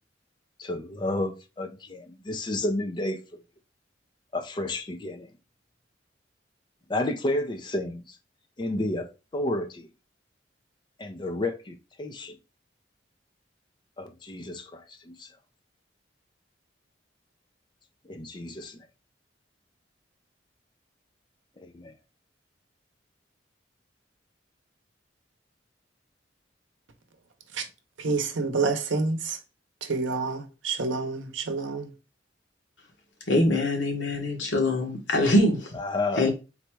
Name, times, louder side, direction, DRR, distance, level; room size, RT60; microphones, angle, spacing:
voice 1, 0.6-3.4 4.3-5.3 6.9-8.2 8.6-9.9 11.0-12.4 14.0-15.3 18.0-18.8 21.6-21.9 35.7-36.3, left 2 dB, 25° left, 0.5 m, -31 dB
voice 2, 28.0-29.4 29.8-31.9, right 4 dB, 90° right, 0.7 m, -28 dB
voice 3, 33.3-35.7 36.2-36.3, left 1 dB, 85° left, 1.2 m, -23 dB
4.0 x 2.2 x 4.5 m
head